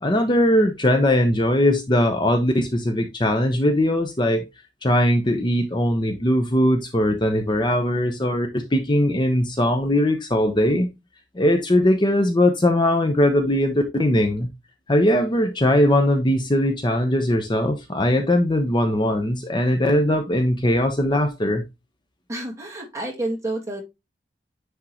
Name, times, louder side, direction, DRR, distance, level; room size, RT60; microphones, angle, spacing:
voice 1, 0.0-4.5 4.8-10.9 11.3-14.5 14.9-21.6, left 1 dB, 25° left, 0.8 m, -20 dB
voice 2, 22.3-23.8, right 1 dB, 15° right, 2.0 m, -29 dB
9.9 x 3.6 x 2.9 m
head